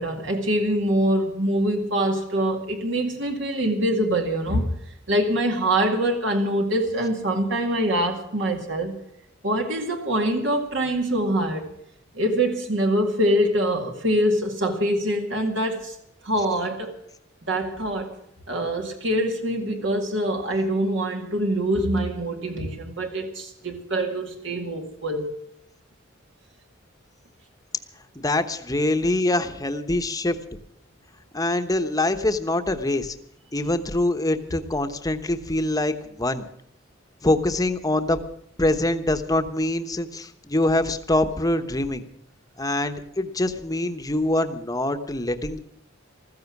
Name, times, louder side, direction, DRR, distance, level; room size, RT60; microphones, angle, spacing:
voice 1, 0.0-4.7 5.1-8.9 9.4-11.7 12.1-16.0 16.2-16.9 17.4-18.1 18.5-25.3, right 1 dB, 65° right, 3 dB, 2.1 m, -24 dB
voice 2, 28.1-30.4 31.3-33.1 33.5-36.4 37.2-38.2 38.6-42.0 42.6-45.6, left 1 dB, 20° left, 8 dB, 1.0 m, -24 dB
15.0 x 14.5 x 6.0 m, 0.72 s
head